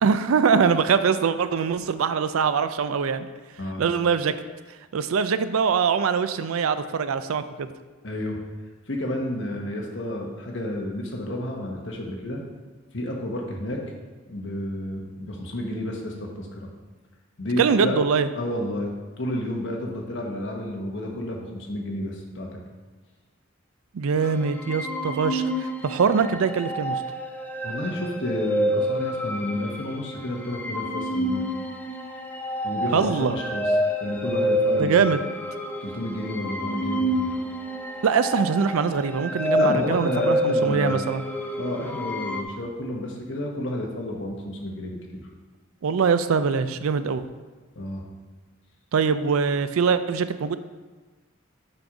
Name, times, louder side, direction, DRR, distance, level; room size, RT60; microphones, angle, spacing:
voice 1, 0.0-3.3 3.8-4.3 4.9-7.7 17.6-18.3 23.9-27.0 32.9-33.4 34.8-35.2 38.0-41.2 45.8-47.3 48.9-50.6, right 6 dB, 85° right, 12 dB, 0.4 m, -23 dB
voice 2, 8.0-8.4 8.9-12.4 12.9-13.8 14.3-16.7 17.4-17.9 18.4-18.9 19.2-22.6 27.6-31.4 32.6-33.7 34.0-35.1 35.8-37.4 39.5-41.0 41.6-45.3 47.7-48.1, left 1 dB, 60° left, 0 dB, 1.2 m, -31 dB
sound 1, 24.2-42.4, equal, 10° left, 0.4 m, -28 dB
5.9 x 5.3 x 4.9 m, 1.3 s
head